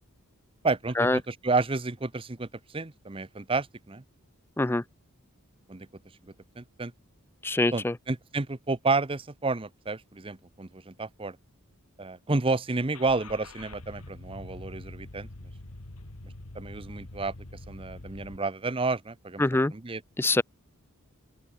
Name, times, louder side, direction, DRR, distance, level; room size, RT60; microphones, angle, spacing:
voice 1, 0.6-2.5 2.7-4.0 5.7-5.9 6.6-6.9 7.7-11.4 12.0-15.3 16.5-17.3 17.7-19.4 19.7-20.0, right 3 dB, 25° right, 0.8 m, -30 dB
voice 2, 7.4-8.0 19.4-19.7 20.2-20.4, left 2 dB, 10° left, 0.4 m, -24 dB
Car / Engine starting, 12.9-18.4, left 2 dB, 80° left, 2.0 m, -44 dB
open air
head